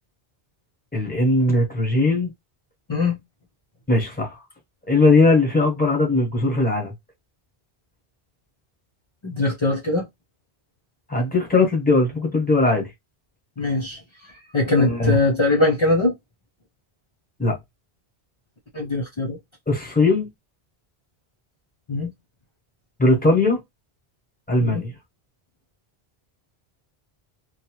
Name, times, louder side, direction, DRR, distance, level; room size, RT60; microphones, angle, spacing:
voice 1, 0.9-2.3 3.9-4.4 4.9-6.9 11.1-12.9 14.8-15.2 17.4-17.6 19.7-20.3 23.0-23.6 24.5-24.9, left 2 dB, 10° left, 1.1 m, -19 dB
voice 2, 2.9-3.2 9.2-10.1 13.6-16.1 18.7-19.4 21.9-22.1 24.6-24.8, left 2 dB, 35° left, 0.5 m, -22 dB
2.8 x 2.3 x 3.0 m
omnidirectional pair, 1.0 m